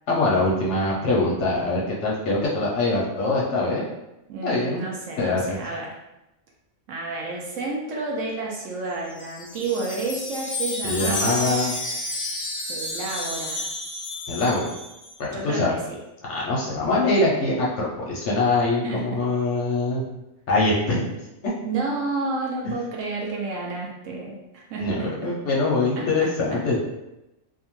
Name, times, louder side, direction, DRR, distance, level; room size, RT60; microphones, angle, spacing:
voice 1, 0.1-3.9 4.4-4.8 5.2-5.7 10.8-11.8 14.3-14.7 15.2-15.7 16.2-20.0 20.5-21.2 21.4-21.5 22.6-22.7 24.8-26.8, left 2 dB, 65° left, -4 dB, 0.8 m, -23 dB
voice 2, 4.3-5.9 6.9-11.6 12.7-13.6 15.3-16.0 18.8-19.0 21.6-25.3, right 3 dB, 70° right, -2 dB, 0.8 m, -30 dB
Wind chime, 8.9-15.1, left 2 dB, 85° left, 0.3 m, -31 dB
2.7 x 2.1 x 2.9 m, 0.94 s
omnidirectional pair, 1.5 m